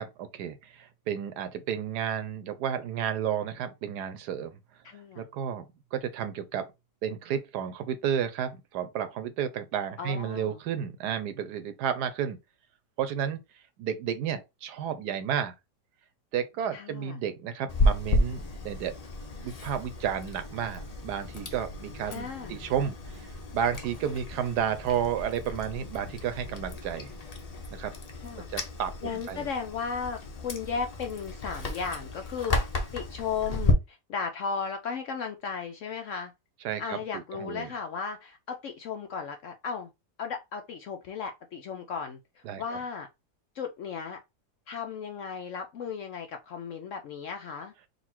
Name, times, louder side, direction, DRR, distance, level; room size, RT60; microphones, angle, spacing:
voice 1, 0.0-4.6 5.2-5.6 5.9-6.7 7.0-12.4 13.0-13.4 13.8-15.5 16.3-18.9 19.4-27.1 27.7-27.9 28.5-29.5 36.6-37.7 42.4-42.6, right 8 dB, 75° right, 1.2 m, -32 dB
voice 2, 4.8-5.3 10.0-10.5 16.7-17.2 22.1-22.6 28.2-28.6 29.0-32.6 32.9-36.3 36.8-39.9 40.2-43.1 43.6-44.2 44.7-47.7, left 6 dB, 70° left, 0.7 m, -35 dB
Chewing mastication, 17.7-33.7, left 2 dB, 90° left, 0.3 m, -33 dB
4.0 x 2.4 x 4.3 m
omnidirectional pair, 1.8 m